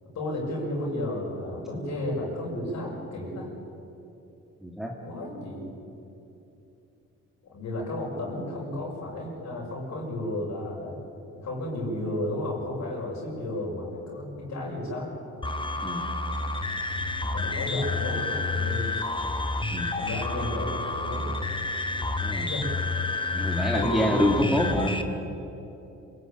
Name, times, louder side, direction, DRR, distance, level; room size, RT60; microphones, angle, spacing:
voice 1, 0.1-3.5 5.0-5.7 7.4-10.9 11.4-15.1 17.3-19.0 20.0-21.3 22.4-22.7 23.7-24.4, left 1 dB, 65° left, -3 dB, 6.9 m, -33 dB
voice 2, 4.6-4.9 15.8-16.0 19.7-19.9 22.2-22.5 23.3-25.0, equal, ahead, -1 dB, 2.7 m, -26 dB
sound 1, 15.4-25.0, left 3 dB, 15° left, 1.6 m, -29 dB
26.0 x 18.0 x 9.2 m, 2.9 s
cardioid pair, 90°, 30 cm